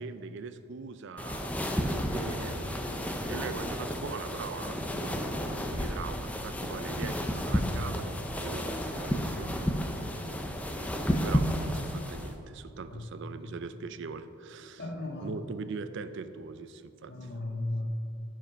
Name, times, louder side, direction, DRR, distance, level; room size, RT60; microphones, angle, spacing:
voice 1, 0.0-1.5 2.1-9.6 10.7-14.8 15.2-17.3, right 5 dB, 55° right, 12 dB, 0.4 m, -41 dB
sound 1, 1.2-12.4, equal, 5° left, 0.4 m, -32 dB
voice 2, 14.8-15.4 17.1-17.9, left 2 dB, 50° left, -1 dB, 1.4 m, -36 dB
9.7 x 5.1 x 5.1 m, 2.5 s
head